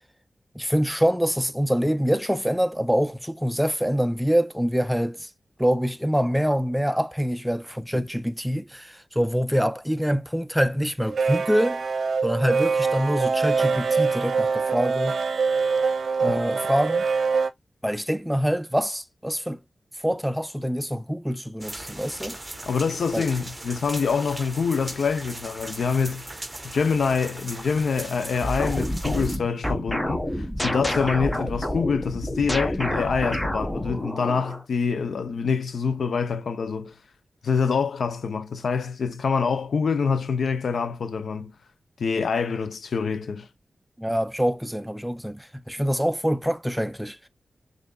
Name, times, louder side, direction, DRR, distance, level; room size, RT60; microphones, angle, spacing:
voice 1, 0.5-5.3 5.6-11.8 12.2-15.2 16.2-17.1 17.8-19.6 20.0-22.4 23.1-23.3 44.0-47.3, equal, 5° right, 0.5 m, -25 dB
sound 1, 11.0-17.5, right 5 dB, 75° right, 0.6 m, -24 dB
sound 2, 21.6-29.4, right 1 dB, 20° right, 1.1 m, -39 dB
voice 2, 22.7-26.2 26.6-36.9 37.4-41.5 42.0-43.5, left 5 dB, 80° left, 0.7 m, -25 dB
sound 3, 28.4-34.6, equal, 15° left, 1.1 m, -28 dB
6.5 x 2.7 x 2.4 m
cardioid pair, 45°, 0 cm